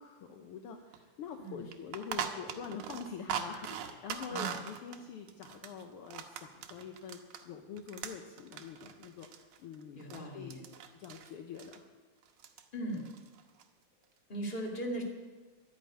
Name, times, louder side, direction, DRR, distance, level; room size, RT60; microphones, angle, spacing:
voice 1, 0.0-10.7 11.0-11.8, left 6 dB, 65° left, 4 dB, 1.5 m, -45 dB
sound 1, 0.9-1.0 1.3-1.4 1.7-7.5 7.8-10.2 10.5-11.3 11.6-11.8 12.2-12.6 12.9-13.6, right 8 dB, 80° right, 2.3 m, -41 dB
voice 2, 1.4-1.7 4.3-4.5 9.9-10.6 12.7-13.1 14.3-15.0, right 1 dB, 20° left, 1 dB, 2.1 m, -38 dB
11.5 x 10.0 x 9.0 m, 1.4 s
omnidirectional pair, 3.4 m